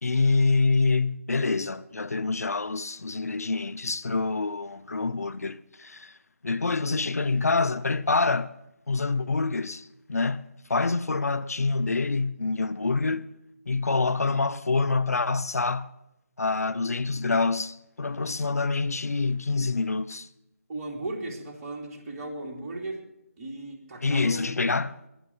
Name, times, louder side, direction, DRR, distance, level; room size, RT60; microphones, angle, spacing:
voice 1, 0.0-6.2 6.4-8.5 8.9-13.3 13.7-15.9 16.4-20.3 24.0-25.0, left 3 dB, 80° left, 0.7 m, -26 dB
voice 2, 20.7-23.0 23.4-24.5, right 2 dB, 25° right, 2.8 m, -36 dB
20.5 x 7.3 x 7.1 m
figure-of-eight pair, 155°, 8 cm